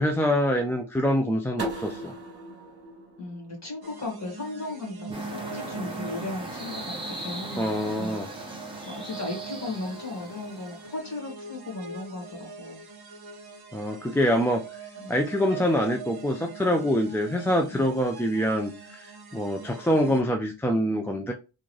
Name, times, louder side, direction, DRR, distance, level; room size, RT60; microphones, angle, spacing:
voice 1, 0.0-2.1 7.6-8.3 13.7-14.6 15.1-21.3, equal, 5° left, 3 dB, 0.4 m, -25 dB
sound 1, 1.6-4.4, right 1 dB, 30° right, 1.3 m, -38 dB
voice 2, 3.2-8.2 8.8-12.8 15.0-15.2 17.7-17.9, left 2 dB, 35° left, -1 dB, 1.9 m, -36 dB
sound 2, 3.8-20.2, right 4 dB, 55° right, 0.9 m, -42 dB
sound 3, 5.1-10.9, right 1 dB, 10° right, 1.0 m, -39 dB
3.6 x 2.6 x 3.1 m, 0.30 s
wide cardioid pair, 100°, 46 cm